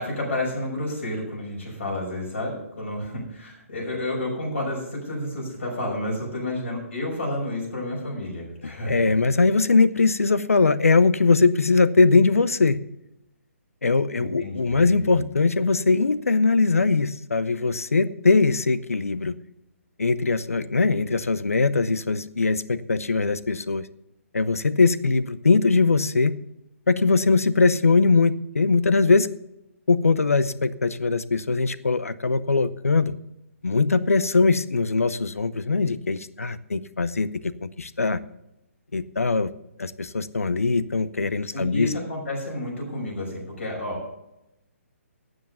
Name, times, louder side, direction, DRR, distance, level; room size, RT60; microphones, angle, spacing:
voice 1, 0.0-9.1 14.1-15.2 41.5-44.1, left 1 dB, 60° left, -3 dB, 5.8 m, -30 dB
voice 2, 8.9-12.8 13.8-19.4 20.0-23.9 24.3-26.4 26.9-29.3 29.9-33.1 33.6-38.2 38.9-39.5 39.8-41.9, left 4 dB, 75° left, 16 dB, 0.7 m, -21 dB
12.0 x 8.0 x 6.9 m, 0.89 s
figure-of-eight pair, 135°, 8 cm